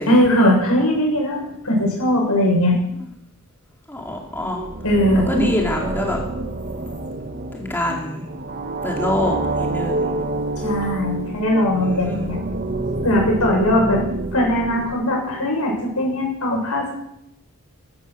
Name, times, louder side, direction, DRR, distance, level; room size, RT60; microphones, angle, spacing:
voice 1, 0.0-2.8 4.8-5.5 10.6-12.4 13.0-14.0 14.3-16.9, left 1 dB, 85° left, 0 dB, 6.9 m, -19 dB
voice 2, 3.9-4.6 5.3-6.2 7.5-8.2 8.8-10.1 11.7-12.2, left 1 dB, 10° left, -1 dB, 2.5 m, -25 dB
sound 1, 4.2-15.5, right 2 dB, 40° right, 1.1 m, -27 dB
15.0 x 14.0 x 6.6 m, 0.81 s
head